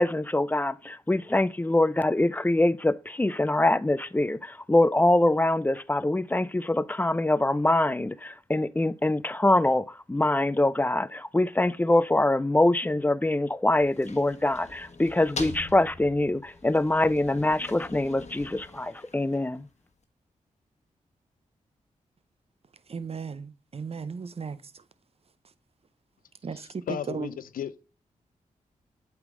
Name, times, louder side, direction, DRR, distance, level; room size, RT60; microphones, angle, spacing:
voice 1, 0.0-19.7, left 1 dB, 10° left, 0.4 m, -24 dB
sound 1, 13.7-19.7, left 3 dB, 50° left, 1.2 m, -43 dB
voice 2, 22.9-24.8 26.4-27.3, right 5 dB, 45° right, 0.6 m, -36 dB
voice 3, 26.9-27.8, left 9 dB, 75° left, 0.4 m, -34 dB
8.0 x 3.6 x 3.7 m
supercardioid pair, 45°, 15 cm